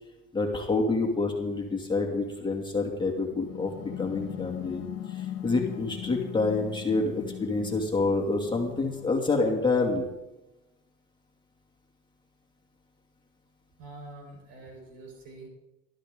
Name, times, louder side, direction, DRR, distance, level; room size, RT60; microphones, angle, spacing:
voice 1, 0.3-3.7 4.0-10.1, left 3 dB, 15° left, 0 dB, 2.5 m, -27 dB
sound 1, 3.4-9.0, left 11 dB, 50° left, 2.0 m, -39 dB
voice 2, 13.8-15.5, right 2 dB, 80° right, 1 dB, 4.6 m, -45 dB
18.0 x 13.0 x 3.8 m, 0.99 s
supercardioid pair, 100°, 30 cm